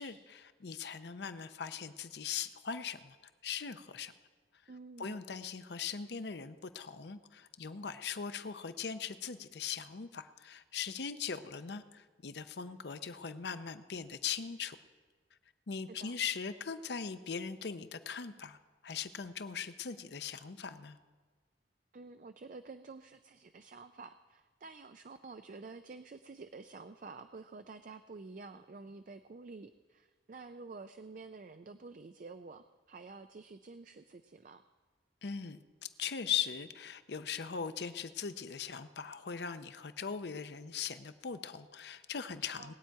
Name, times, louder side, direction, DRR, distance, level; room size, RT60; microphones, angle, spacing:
voice 1, 0.0-3.2 3.4-4.1 5.0-14.8 15.7-18.6 18.8-21.0 35.2-35.6 36.0-42.7, left 7 dB, 65° left, 11 dB, 0.6 m, -40 dB
voice 2, 4.7-5.2 15.9-16.2 21.9-34.6 42.6-42.7, right 3 dB, 45° right, 9 dB, 0.4 m, -50 dB
20.0 x 8.9 x 4.6 m, 1.4 s
head